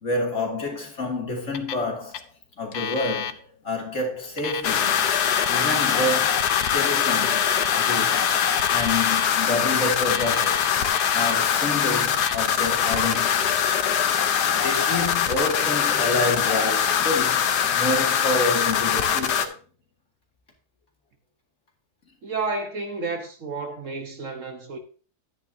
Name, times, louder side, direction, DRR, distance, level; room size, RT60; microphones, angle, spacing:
voice 1, 0.0-2.2 2.6-5.0 5.5-6.4 6.7-7.5 7.8-8.3 8.7-10.8 11.1-13.7 14.5-19.5, left 2 dB, 50° left, 2.6 m, -28 dB
Alarm, 1.5-1.9 2.1-2.2 2.7-3.3 4.2-9.3 10.0-11.5 12.0-12.4 12.7-13.5, left 8 dB, 70° left, 1.3 m, -31 dB
sound 1, 4.6-19.4, left 8 dB, 90° left, 1.5 m, -23 dB
voice 2, 22.2-24.8, right 3 dB, 55° right, 1.3 m, -31 dB
11.5 x 9.5 x 2.7 m
omnidirectional pair, 1.7 m